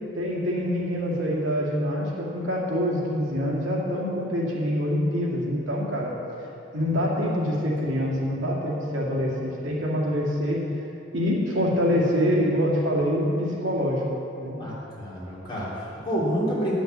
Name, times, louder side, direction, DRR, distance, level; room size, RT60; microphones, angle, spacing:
voice 1, 0.1-6.1 6.7-10.6 11.1-14.0 14.4-14.6, equal, 70° right, -4 dB, 2.3 m, -25 dB
voice 2, 14.6-16.7, equal, 25° left, -8 dB, 3.1 m, -29 dB
11.0 x 6.3 x 8.0 m, 2.9 s
head